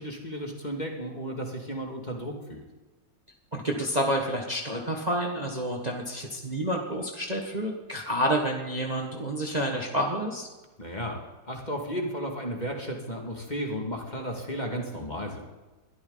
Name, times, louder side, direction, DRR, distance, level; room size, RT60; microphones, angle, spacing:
voice 1, 0.0-2.6 10.8-11.2 11.5-15.4, equal, 25° left, 1 dB, 2.4 m, -34 dB
voice 2, 3.5-10.5, equal, 25° right, 1 dB, 1.7 m, -29 dB
22.0 x 13.5 x 4.0 m, 1.2 s
omnidirectional pair, 1.9 m